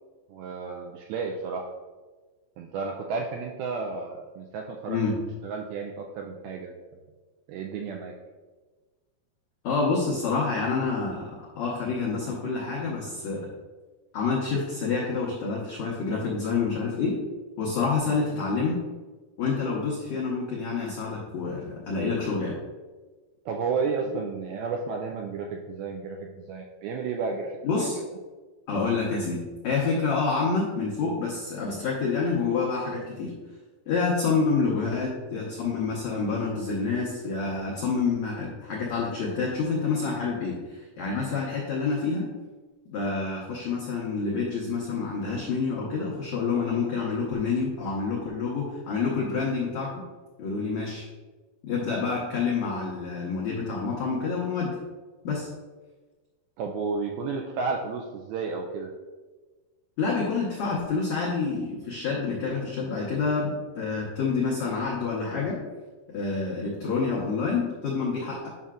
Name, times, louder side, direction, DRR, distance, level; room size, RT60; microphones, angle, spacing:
voice 1, 0.3-1.7 2.6-5.0 5.4-6.8 7.5-8.1 23.5-27.9 56.6-58.9, right 4 dB, 85° right, 2 dB, 2.2 m, -32 dB
voice 2, 9.6-13.5 14.1-17.2 17.6-18.8 19.4-22.6 27.6-28.0 28.7-33.3 33.9-42.3 42.9-50.0 50.4-51.0 51.6-54.8 55.2-55.5 60.0-65.6 66.1-68.5, left 4 dB, 85° left, -5 dB, 1.5 m, -28 dB
9.3 x 5.6 x 2.5 m, 1.3 s
omnidirectional pair, 4.8 m